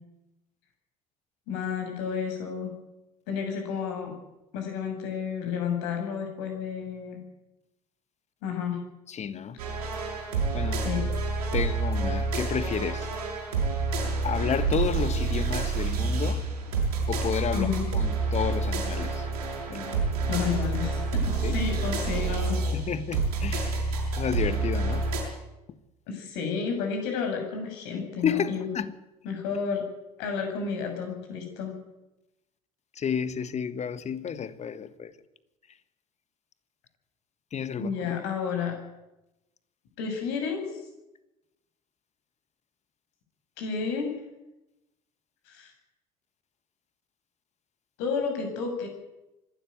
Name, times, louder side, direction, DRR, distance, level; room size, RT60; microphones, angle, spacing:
voice 1, 1.5-2.7 3.3-4.1 4.5-7.2 8.4-8.8 10.8-11.0 17.5-17.9 20.3-22.6 26.1-28.7 29.2-29.8 30.2-31.7 37.8-38.7 40.0-40.7 43.6-44.1 45.5-45.7 48.0-48.9, left 6 dB, 60° left, 6.9 m, -31 dB
voice 2, 9.1-9.6 10.5-10.8 11.5-13.1 14.2-16.4 17.1-19.3 19.7-20.0 21.4-21.6 22.7-23.9 24.1-25.0 28.2-28.9 32.9-35.1 37.5-38.2, left 7 dB, 35° left, 1.5 m, -31 dB
sound 1, 9.6-25.2, right 3 dB, 75° right, 7.0 m, -28 dB
25.0 x 12.5 x 9.4 m
figure-of-eight pair, 60°, 20 cm